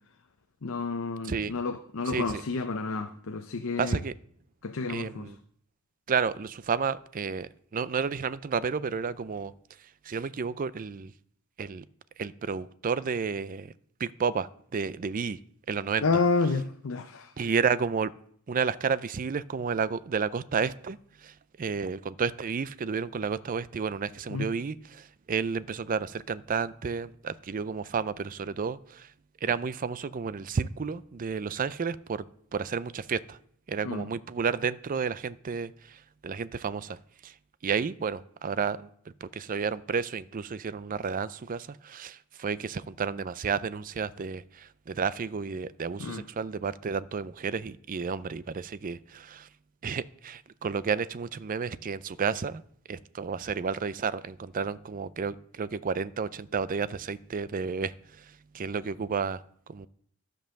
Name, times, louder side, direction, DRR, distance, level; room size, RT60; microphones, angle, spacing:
voice 1, 0.6-4.0 4.6-5.3 16.0-17.3 24.3-24.5 33.8-34.1 46.0-46.2, left 4 dB, 60° left, 0.6 m, -30 dB
voice 2, 2.1-2.4 3.8-4.1 4.9-5.4 6.1-9.5 10.0-11.1 11.6-11.8 12.2-13.7 14.0-15.4 15.7-16.2 17.4-18.1 18.5-29.1 29.4-32.2 32.5-33.4 33.7-37.3 37.6-38.9 39.2-49.5 49.8-52.6 52.9-58.2 58.5-59.4 59.7-59.9, right 5 dB, 40° right, 0.4 m, -31 dB
13.0 x 5.4 x 6.4 m
head